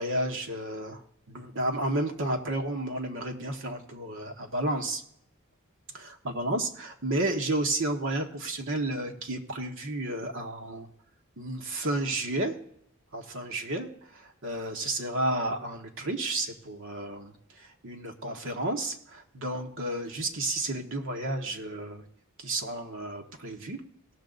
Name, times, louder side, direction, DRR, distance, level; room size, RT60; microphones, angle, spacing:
voice 1, 0.0-5.0 5.9-10.9 11.4-12.5 13.1-22.0 22.4-23.8, right 1 dB, 65° right, 3 dB, 1.4 m, -32 dB
17.5 x 6.7 x 3.9 m, 0.73 s
head